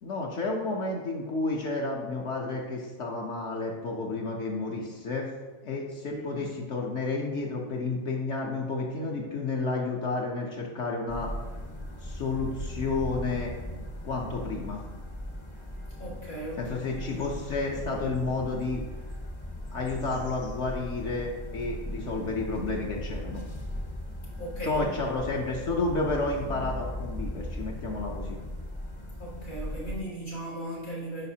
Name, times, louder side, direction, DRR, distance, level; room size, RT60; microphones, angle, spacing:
voice 1, 0.0-5.3 5.6-11.3 12.0-13.5 14.0-14.8 16.6-18.8 19.7-23.4 24.6-28.4, left 3 dB, 65° left, -1 dB, 1.0 m, -31 dB
voice 2, 6.0-6.4 16.0-17.3 24.4-24.9 29.2-31.3, right 1 dB, 90° left, -8 dB, 2.6 m, -37 dB
sound 1, 11.1-30.0, left 1 dB, 30° left, 0.6 m, -38 dB
9.4 x 4.9 x 2.8 m, 1.3 s
omnidirectional pair, 1.4 m